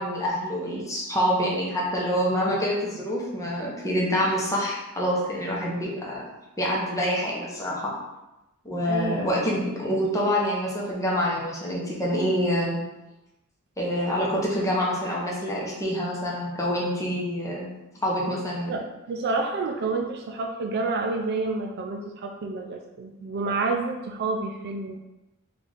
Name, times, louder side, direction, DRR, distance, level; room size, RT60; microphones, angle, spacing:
voice 1, 0.0-6.2 6.6-7.9 8.6-12.8 13.8-17.7 18.0-18.7, equal, 15° left, -4 dB, 0.8 m, -26 dB
voice 2, 8.9-9.3 18.7-18.8 19.1-25.0, right 3 dB, 50° right, 2 dB, 0.4 m, -29 dB
3.9 x 2.4 x 3.3 m, 0.98 s
head